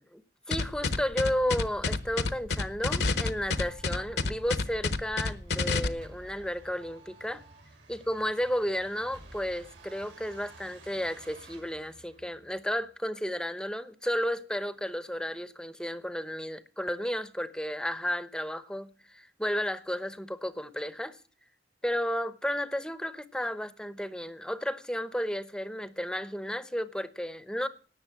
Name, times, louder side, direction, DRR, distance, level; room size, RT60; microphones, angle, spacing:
sound 1, 0.5-5.9, left 3 dB, 65° left, 0.9 m, -28 dB
voice 1, 0.5-7.4 7.9-21.2 21.8-27.7, equal, 5° left, 0.8 m, -33 dB
sound 2, 1.5-13.0, right 2 dB, 90° right, 5.0 m, -53 dB
18.0 x 6.7 x 8.7 m
head